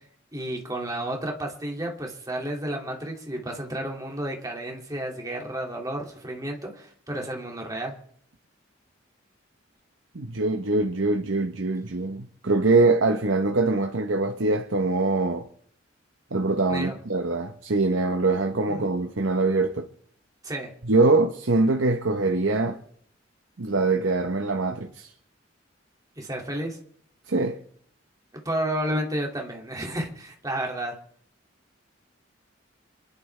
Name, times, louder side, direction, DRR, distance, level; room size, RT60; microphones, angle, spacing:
voice 1, 0.3-8.0 16.7-17.0 18.7-18.9 20.4-20.7 26.2-26.8 28.3-30.9, right 1 dB, 20° right, 2.3 m, -31 dB
voice 2, 10.1-15.5 16.3-19.9 20.8-22.8 23.6-25.1 27.3-27.6, right 3 dB, 80° right, 0.9 m, -23 dB
27.0 x 11.0 x 3.3 m
head